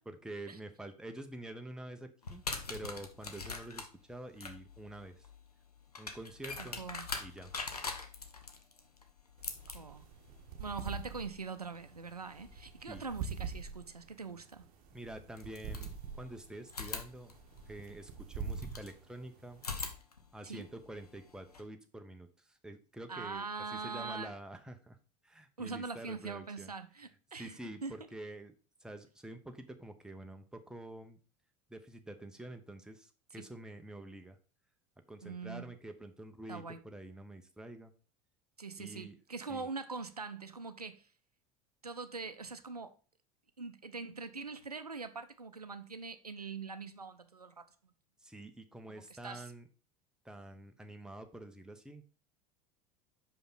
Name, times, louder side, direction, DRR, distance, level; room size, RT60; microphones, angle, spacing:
voice 1, 0.0-2.4 2.7-5.3 6.0-6.8 7.2-7.5 12.9-13.0 14.9-17.3 17.7-19.6 20.3-23.5 23.7-25.0 25.2-26.7 27.3-28.5 28.8-31.2 31.7-34.4 35.1-37.9 38.8-39.2 39.5-39.7 48.2-49.7 50.2-52.0, right 1 dB, 5° right, 0.9 m, -47 dB
sound 1, 2.2-13.0 14.5-14.6 15.3-16.3 16.7-19.0 19.5-21.6, left 4 dB, 85° left, 0.9 m, -44 dB
voice 2, 6.6-7.1 9.7-10.1 10.6-14.6 20.4-20.7 23.1-24.3 25.6-28.0 33.4-33.5 35.2-35.7 36.5-36.8 38.6-41.1 41.8-42.9 43.6-47.7 48.9-49.5, right 4 dB, 90° right, 0.5 m, -43 dB
sound 2, 9.4-19.9, right 5 dB, 45° right, 1.0 m, -45 dB
5.8 x 5.2 x 4.0 m
figure-of-eight pair, 75°, 19 cm